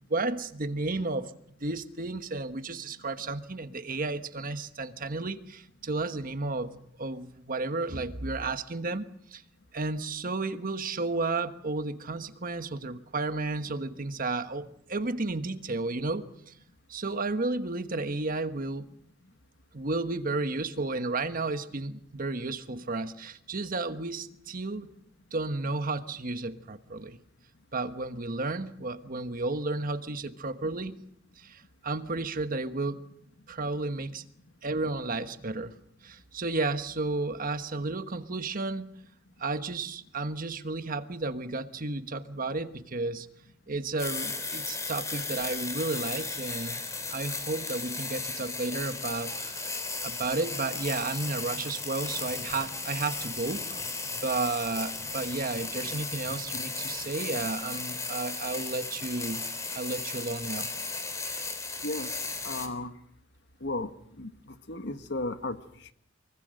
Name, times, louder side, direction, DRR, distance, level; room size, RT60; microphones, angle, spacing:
voice 1, 0.1-1.3 1.6-9.4 9.7-16.5 16.9-18.9 19.7-24.9 25.3-27.2 27.7-31.0 31.4-33.0 33.5-34.2 34.6-35.7 36.0-38.9 39.4-43.3 43.7-49.7 50.0-59.4 59.7-60.7, right 3 dB, 45° right, 10 dB, 1.3 m, -32 dB
sound 1, 44.0-62.7, left 3 dB, 15° left, 3.4 m, -35 dB
voice 2, 61.8-62.9 63.6-63.9 64.2-65.9, left 2 dB, 65° left, 9 dB, 1.5 m, -35 dB
24.5 x 23.5 x 6.5 m, 0.71 s
head